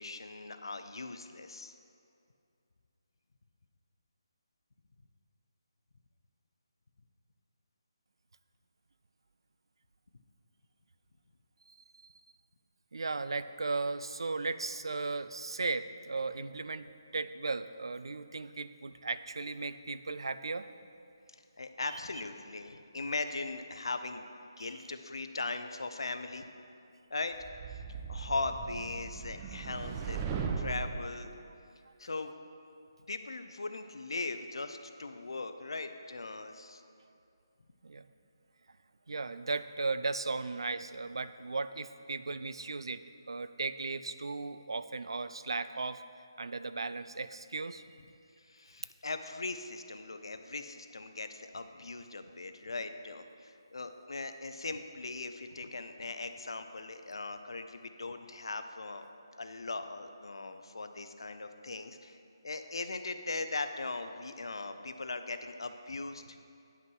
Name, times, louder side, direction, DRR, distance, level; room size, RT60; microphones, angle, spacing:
voice 1, 0.0-1.8 21.6-24.2 24.6-26.5 27.1-27.3 27.9-30.2 30.6-31.3 32.0-32.3 33.1-36.8 48.4-59.1 59.4-62.2 62.4-66.4, left 3 dB, 85° left, 8 dB, 0.6 m, -39 dB
voice 2, 12.9-16.9 17.1-20.6 24.6-24.7 37.8-38.1 39.1-43.0 43.3-46.0 46.4-47.8, right 3 dB, 90° right, 13 dB, 0.4 m, -36 dB
sound 1, 27.4-31.1, right 6 dB, 15° right, 0.4 m, -38 dB
9.6 x 5.8 x 4.6 m, 2.5 s
hypercardioid pair, 170°, 2 cm